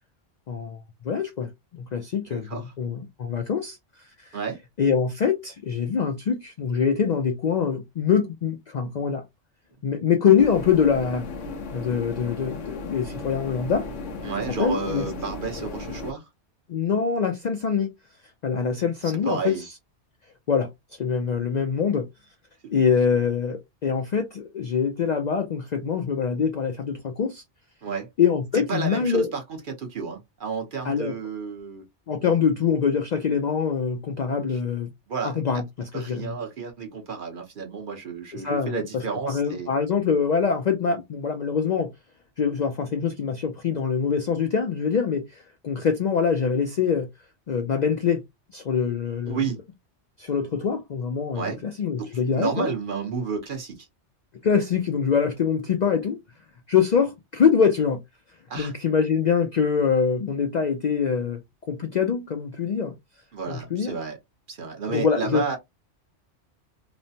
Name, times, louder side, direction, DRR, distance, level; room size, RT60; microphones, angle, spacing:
voice 1, 0.5-1.5 1.8-3.8 4.2-4.3 4.8-9.2 9.8-11.2 11.7-13.9 14.5-15.0 16.7-17.9 18.4-19.6 20.5-22.1 22.7-27.4 28.2-29.3 30.8-31.2 32.1-34.9 35.2-36.3 38.3-41.9 42.4-47.1 47.5-48.2 48.5-49.4 50.2-52.7 54.4-56.2 56.7-58.0 58.6-61.4 61.7-63.0 63.5-64.0 64.9-65.6, left 6 dB, 60° left, 0.4 m, -24 dB
voice 2, 2.3-2.7 4.3-4.6 14.2-16.2 19.0-19.6 22.6-22.8 27.8-28.1 28.7-31.9 34.5-34.6 35.1-35.4 35.9-39.7 49.3-49.6 51.3-51.6 52.0-53.9 58.5-58.7 63.3-64.2 64.5-65.6, right 5 dB, 50° right, 0.8 m, -31 dB
sound 1, 10.4-16.1, left 3 dB, 90° left, 1.1 m, -36 dB
3.1 x 2.1 x 2.6 m
omnidirectional pair, 1.2 m